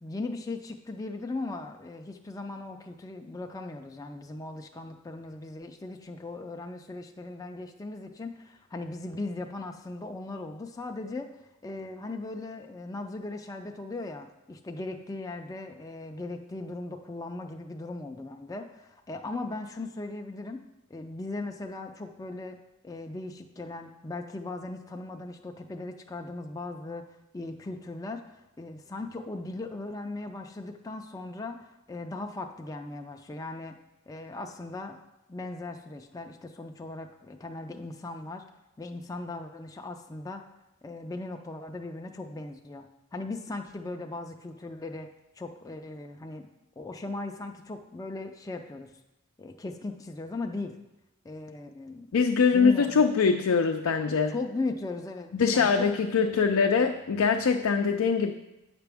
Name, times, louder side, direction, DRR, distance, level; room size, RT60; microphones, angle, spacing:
voice 1, 0.0-11.3 11.6-20.6 20.9-22.6 22.8-27.1 27.3-33.8 34.1-35.0 35.3-38.5 38.8-40.4 40.8-45.1 45.4-46.5 46.8-48.9 49.4-50.8 51.2-52.1 52.5-53.1 54.3-56.1, left 2 dB, 15° left, 3 dB, 0.4 m, -38 dB
voice 2, 52.1-54.3 55.3-58.3, left 5 dB, 90° left, 3 dB, 0.4 m, -23 dB
8.8 x 5.9 x 3.4 m, 0.94 s
head